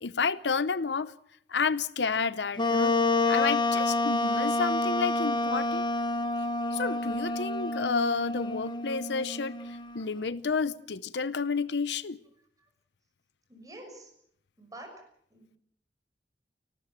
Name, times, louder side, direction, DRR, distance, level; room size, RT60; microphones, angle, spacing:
voice 1, 0.0-1.1 1.5-3.0 3.3-5.8 6.7-9.6 9.9-12.2, left 4 dB, 75° left, 0.7 m, -30 dB
Wind instrument woodwind instrument, 2.6-10.0, left 2 dB, 25° left, 1.2 m, -28 dB
voice 2, 13.5-14.1 14.6-14.9 15.3-15.6, right 1 dB, 20° right, 6.1 m, -47 dB
29.5 x 13.0 x 7.5 m
head